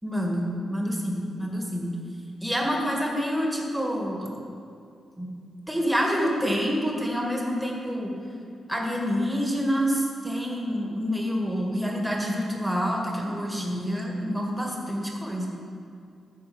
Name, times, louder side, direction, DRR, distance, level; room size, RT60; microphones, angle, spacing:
voice 1, 0.0-1.9 2.4-4.3 5.2-5.3 5.7-8.1 8.7-15.5, equal, 5° right, -1 dB, 1.8 m, -27 dB
12.0 x 4.4 x 7.8 m, 2.4 s
cardioid pair, 100°, 0 cm